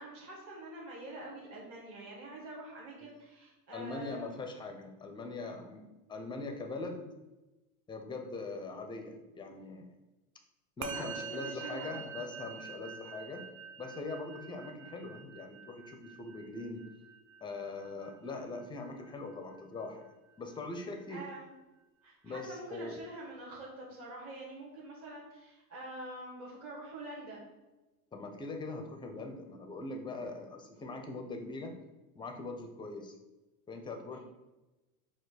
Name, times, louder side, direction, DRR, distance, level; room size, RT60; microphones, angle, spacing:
voice 1, 0.0-4.4 10.9-12.0 21.1-21.5 22.0-27.4 30.7-31.0 34.1-34.2, right 1 dB, 35° right, -5 dB, 1.3 m, -46 dB
voice 2, 3.7-7.1 7.9-9.9 10.8-13.5 13.8-16.8 17.4-20.0 20.4-21.2 22.2-23.0 28.1-31.7 32.1-33.1 33.7-34.2, left 3 dB, 10° left, 5 dB, 0.4 m, -42 dB
Musical instrument, 10.8-20.3, right 6 dB, 55° right, 0.7 m, -46 dB
4.7 x 2.2 x 4.0 m, 1.1 s
hypercardioid pair, 90°, 45 cm